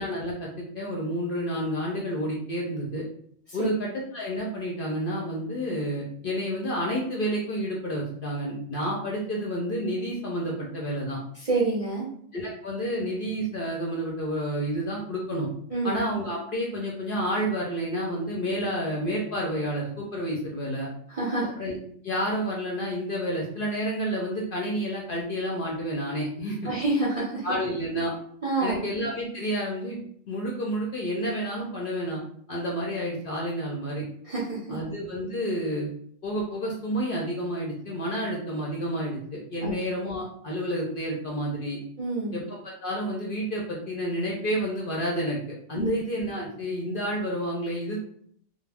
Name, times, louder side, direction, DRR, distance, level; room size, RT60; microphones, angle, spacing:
voice 1, 0.0-3.0 3.5-11.2 12.3-15.5 15.8-20.9 21.6-21.8 22.0-26.6 27.4-28.1 28.6-30.0 30.3-32.2 32.5-34.1 34.7-35.9 36.2-41.8 42.3-45.4 45.7-48.0, equal, 55° left, -2 dB, 0.6 m, -30 dB
voice 2, 11.3-12.1 15.7-16.0 21.1-21.5 26.6-27.5 28.4-28.8 34.2-34.8 39.6-39.7 42.0-42.4 45.7-45.9, right 3 dB, 45° right, -6 dB, 0.4 m, -27 dB
2.2 x 2.0 x 3.3 m, 0.63 s
omnidirectional pair, 1.3 m